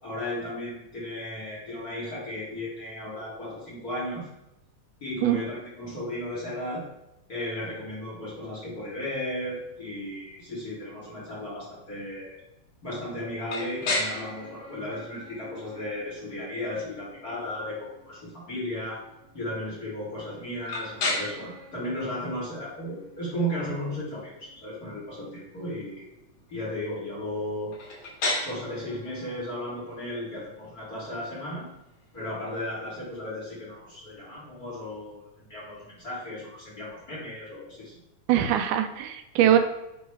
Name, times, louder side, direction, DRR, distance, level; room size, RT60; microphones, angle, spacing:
voice 1, 0.0-4.3 5.0-6.9 7.3-12.4 12.8-19.0 19.3-26.1 26.5-27.7 28.4-31.7 32.1-37.9 39.4-39.6, left 1 dB, 35° left, -8 dB, 1.8 m, -35 dB
sound 1, 13.5-33.2, left 2 dB, 55° left, 2.6 m, -37 dB
voice 2, 38.3-39.6, right 11 dB, 85° right, 7 dB, 2.1 m, -22 dB
9.3 x 3.2 x 4.7 m, 0.91 s
omnidirectional pair, 3.5 m